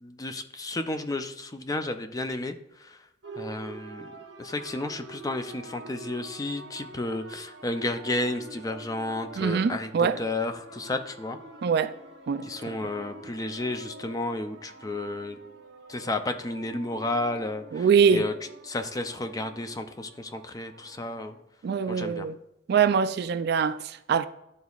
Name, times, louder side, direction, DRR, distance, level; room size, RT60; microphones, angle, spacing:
voice 1, 0.0-2.5 3.4-4.1 4.4-11.4 12.5-15.4 15.9-17.8 18.1-18.3 18.6-21.3 21.9-22.3, left 2 dB, 20° left, 0.4 m, -32 dB
sound 1, 3.2-21.4, right 3 dB, 90° right, 0.9 m, -46 dB
voice 2, 9.4-10.2 11.6-11.9 12.3-12.5 17.7-18.3 21.6-22.4 22.7-24.3, right 6 dB, 60° right, 0.3 m, -23 dB
11.0 x 4.0 x 2.4 m
head